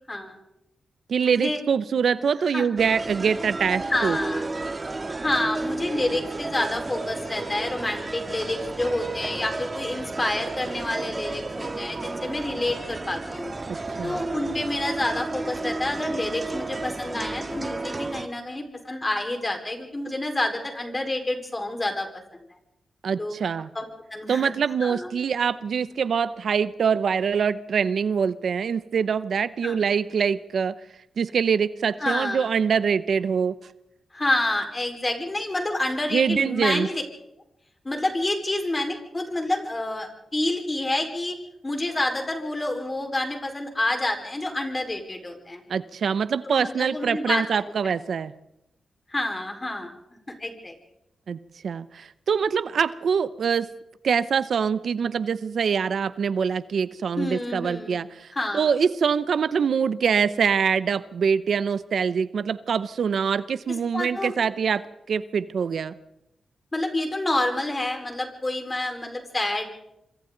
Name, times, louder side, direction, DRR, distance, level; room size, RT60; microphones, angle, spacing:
voice 1, 0.1-0.4 1.2-1.6 2.5-2.7 3.9-4.4 5.2-13.5 14.0-22.1 23.2-24.5 24.8-25.1 29.6-29.8 32.0-32.5 34.1-37.0 37.8-41.4 41.6-45.6 46.4-47.5 49.1-49.9 50.4-50.7 57.2-58.0 58.3-58.7 63.9-64.3 66.7-69.7, left 1 dB, 25° left, 4 dB, 4.6 m, -28 dB
voice 2, 1.1-4.2 13.7-14.2 23.0-23.7 24.3-30.7 31.2-33.6 36.1-36.9 45.7-48.3 51.3-51.4 51.6-53.7 54.0-58.3 58.5-65.9, right 6 dB, 75° right, 15 dB, 0.7 m, -24 dB
sound 1, 2.8-18.3, right 3 dB, 35° right, 1.7 m, -32 dB
26.0 x 25.5 x 3.9 m, 0.83 s
cardioid pair, 80°, 0 cm